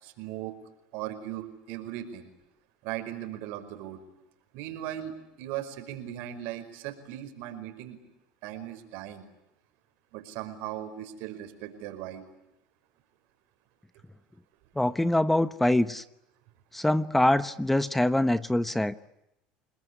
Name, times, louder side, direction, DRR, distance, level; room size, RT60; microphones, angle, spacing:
voice 1, 0.0-0.5 0.9-2.3 2.8-4.0 4.5-8.0 8.4-9.3 10.1-12.2, right 12 dB, 70° right, 9 dB, 5.3 m, -38 dB
voice 2, 14.8-16.0 16.7-19.1, left 1 dB, 5° left, 14 dB, 1.0 m, -24 dB
30.0 x 20.0 x 9.9 m, 0.85 s
supercardioid pair, 110°, 3 cm